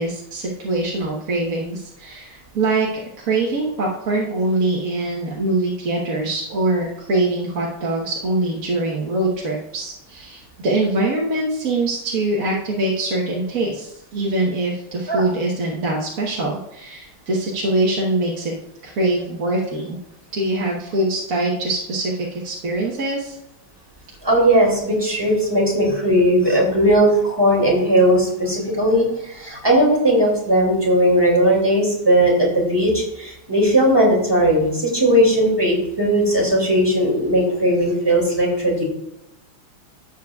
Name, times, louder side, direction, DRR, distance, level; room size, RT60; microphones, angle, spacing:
voice 1, 0.0-2.9 3.2-18.5 18.8-20.0 20.3-23.4, right 2 dB, 45° right, -3 dB, 1.5 m, -23 dB
voice 2, 24.2-38.8, equal, 10° right, -2 dB, 2.5 m, -17 dB
12.0 x 8.1 x 2.4 m, 0.84 s
omnidirectional pair, 2.2 m